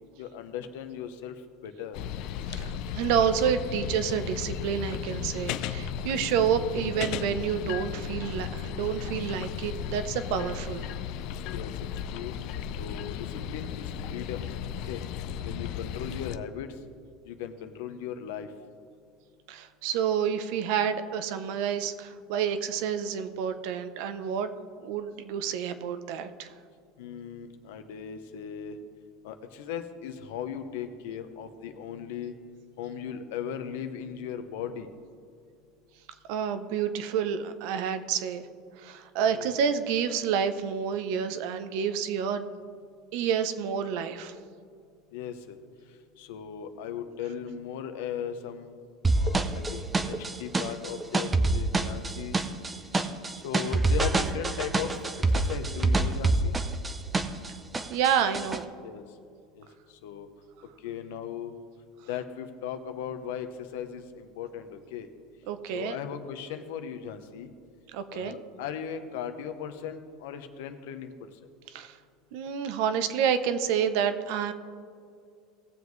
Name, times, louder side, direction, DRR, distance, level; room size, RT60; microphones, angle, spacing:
voice 1, 0.2-1.3 1.6-2.0 6.6-6.7 11.5-12.3 12.8-14.5 14.8-15.0 15.4-16.7 17.2-18.5 27.0-28.8 29.2-32.3 32.8-34.9 39.3-39.5 45.1-45.6 46.2-48.8 49.1-52.4 53.4-56.6 58.8-59.0 59.6-60.3 60.8-61.5 62.1-65.1 65.7-67.5 68.1-71.1, left 8 dB, 80° left, 8 dB, 0.9 m, -37 dB
sound 1, 1.9-16.4, left 9 dB, 60° left, 0.4 m, -35 dB
voice 2, 2.5-10.9 19.5-24.5 24.8-26.5 36.3-38.5 38.8-42.5 43.1-44.4 57.9-58.7 65.5-66.0 67.9-68.4 71.7-72.0 72.3-74.5, right 8 dB, 65° right, 11 dB, 0.7 m, -29 dB
sound 2, 49.0-57.5 57.7-58.6, right 2 dB, 15° right, 0.6 m, -26 dB
18.0 x 7.3 x 3.2 m, 2.3 s
supercardioid pair, 140°, 0 cm